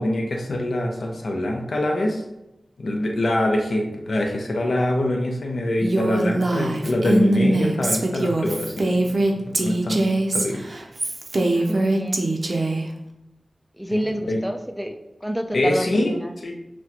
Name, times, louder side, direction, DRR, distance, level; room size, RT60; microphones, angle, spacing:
voice 1, 0.0-2.2 2.8-10.1 10.3-10.6 13.9-14.4 15.5-16.6, left 1 dB, 80° left, 1 dB, 0.6 m, -24 dB
Female speech woman speaking, 5.8-12.8, right 2 dB, 60° right, 0.5 m, -22 dB
voice 2, 11.5-12.9 13.8-16.4, equal, 5° right, 6 dB, 0.3 m, -30 dB
6.1 x 2.2 x 2.9 m, 0.92 s
wide cardioid pair, 80°, 0 cm